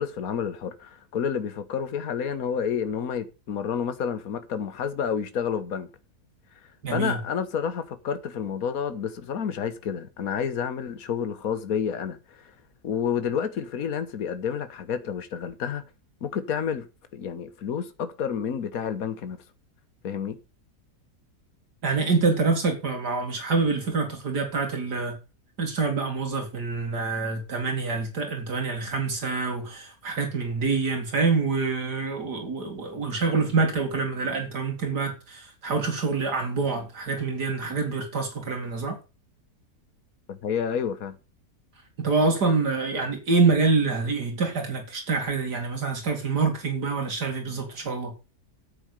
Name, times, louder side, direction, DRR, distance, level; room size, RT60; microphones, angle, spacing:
voice 1, 0.0-5.9 6.9-12.5 12.8-15.8 16.2-16.9 17.1-19.4 20.0-20.4 40.3-41.2, left 7 dB, 60° left, 1.6 m, -29 dB
voice 2, 6.8-7.2 21.8-25.2 25.6-39.0 42.0-48.1, right 4 dB, 75° right, 3.0 m, -26 dB
9.6 x 7.8 x 6.7 m
omnidirectional pair, 1.7 m